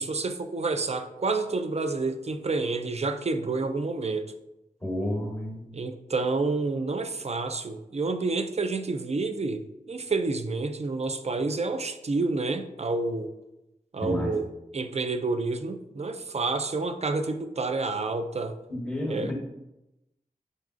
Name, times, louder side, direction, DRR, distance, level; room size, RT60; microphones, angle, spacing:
voice 1, 0.0-4.2 5.7-9.6 9.9-13.3 13.9-14.4 14.7-18.6 19.1-19.3, right 3 dB, 45° right, 8 dB, 0.4 m, -29 dB
voice 2, 4.8-5.7 14.0-14.4 18.7-19.3, left 1 dB, 5° left, -2 dB, 1.0 m, -31 dB
3.9 x 3.6 x 2.5 m, 0.91 s
wide cardioid pair, 50°, 15 cm